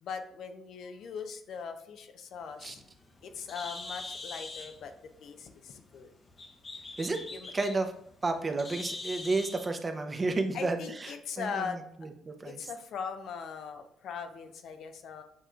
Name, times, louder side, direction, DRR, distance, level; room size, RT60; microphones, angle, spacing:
voice 1, 0.0-2.8 3.2-4.9 5.2-6.1 7.3-7.5 10.5-11.8 12.4-15.2, left 6 dB, 70° left, 7 dB, 0.5 m, -40 dB
Bird, 2.4-9.7, left 3 dB, 35° left, 0.7 m, -44 dB
voice 2, 7.5-7.9 8.2-10.8 11.0-11.7 12.3-12.6, right 3 dB, 30° right, 6 dB, 0.6 m, -31 dB
7.1 x 3.0 x 2.3 m, 0.68 s
cardioid pair, 90°, 0 cm